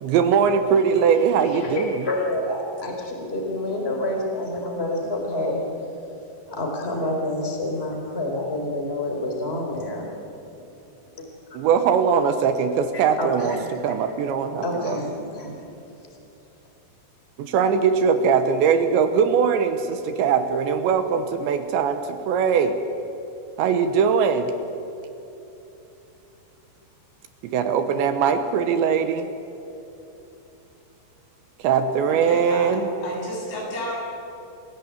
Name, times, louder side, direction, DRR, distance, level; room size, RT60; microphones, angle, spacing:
voice 1, 0.0-2.0 11.5-15.0 17.4-22.8 23.6-24.5 27.4-29.3 31.6-32.9, right 6 dB, 75° right, 8 dB, 3.2 m, -21 dB
voice 2, 1.5-5.6 6.5-10.1 11.5-11.6 12.9-13.6 14.6-15.6, left 1 dB, 15° left, 1 dB, 3.8 m, -28 dB
voice 3, 32.1-33.9, left 1 dB, 85° left, -3 dB, 10.5 m, -32 dB
28.5 x 16.5 x 8.6 m, 3.0 s
omnidirectional pair, 5.7 m